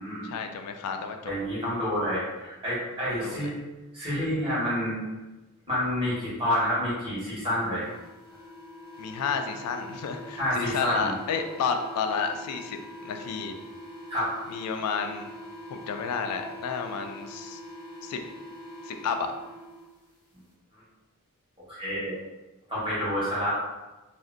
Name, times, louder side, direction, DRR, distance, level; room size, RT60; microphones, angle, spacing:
voice 1, 0.2-1.3 3.1-3.5 9.0-12.8 13.0-13.6 14.5-15.3 15.7-17.6 18.0-18.2 18.8-19.3, left 6 dB, 90° left, 9 dB, 0.3 m, -31 dB
voice 2, 1.2-3.6 3.9-5.0 5.7-7.8 10.4-11.1 14.1-14.3 21.7-22.1 22.7-23.6, equal, 25° right, -10 dB, 1.4 m, -28 dB
sound 1, 7.8-19.8, equal, 5° left, 0.8 m, -43 dB
2.7 x 2.5 x 2.5 m, 1.1 s
head